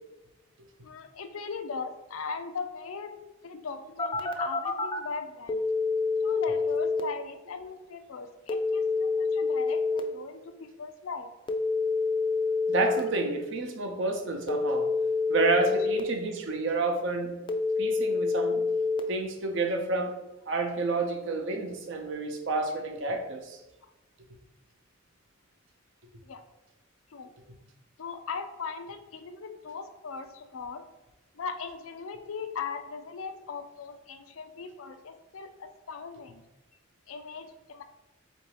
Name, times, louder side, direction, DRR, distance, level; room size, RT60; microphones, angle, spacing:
voice 1, 0.8-3.1 3.4-5.6 6.2-11.3 26.2-26.4 27.1-27.3 28.0-30.8 31.3-36.4 37.1-37.8, left 5 dB, 85° left, 8 dB, 0.5 m, -39 dB
Telephone, 4.0-5.0 5.5-7.0 8.5-10.0 11.5-13.0 14.5-16.0 17.5-19.0, left 4 dB, 25° left, 0.4 m, -27 dB
voice 2, 12.7-14.9 15.3-17.4 17.8-18.6 19.1-20.1 20.5-23.6, right 3 dB, 65° right, 3 dB, 0.7 m, -29 dB
3.9 x 2.6 x 4.7 m, 1.0 s
head